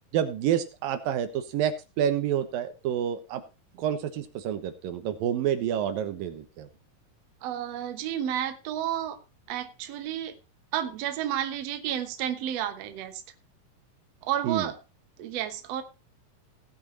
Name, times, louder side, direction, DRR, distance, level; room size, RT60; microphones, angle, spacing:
voice 1, 0.1-3.4 3.8-6.7 14.4-14.7, right 9 dB, 85° right, 9 dB, 2.9 m, -28 dB
voice 2, 7.4-9.2 9.5-10.4 10.7-13.2 14.2-14.8 15.2-15.8, right 11 dB, 60° right, 8 dB, 2.0 m, -31 dB
18.0 x 6.3 x 4.2 m, 0.29 s
omnidirectional pair, 4.0 m